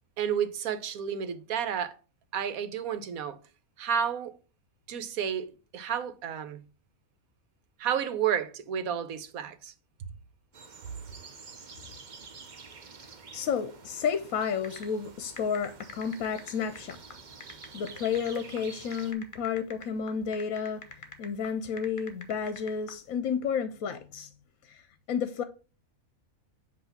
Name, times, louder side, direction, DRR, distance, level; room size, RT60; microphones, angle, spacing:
voice 1, 0.2-2.0 2.3-3.4 3.8-4.3 4.9-6.6 7.8-9.7, right 8 dB, 80° right, 1.2 m, -31 dB
sound 1, 10.5-19.1, right 5 dB, 40° right, 0.8 m, -49 dB
voice 2, 13.3-17.0 17.7-24.3 24.6-24.8 25.1-25.4, left 7 dB, 75° left, 1.1 m, -31 dB
sound 2, 14.6-23.0, left 3 dB, 25° left, 1.0 m, -46 dB
7.9 x 2.9 x 5.8 m
omnidirectional pair, 1.5 m